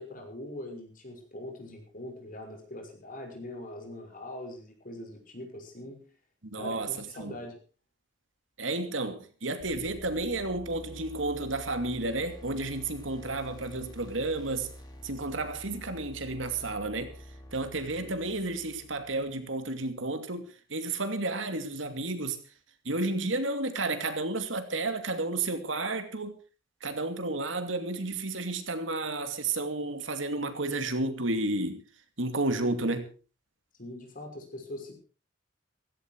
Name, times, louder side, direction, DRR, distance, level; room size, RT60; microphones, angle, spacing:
voice 1, 0.0-6.0 6.6-7.6 17.9-18.1 33.8-34.9, left 1 dB, 45° left, 6.0 m, -42 dB
voice 2, 6.5-7.4 8.6-14.7 15.0-17.1 17.5-22.4 22.8-26.4 26.8-31.8 32.2-33.1, right 2 dB, 80° right, 2.5 m, -32 dB
sound 1, 9.6-19.4, equal, 20° left, 2.8 m, -48 dB
16.0 x 16.0 x 4.7 m
head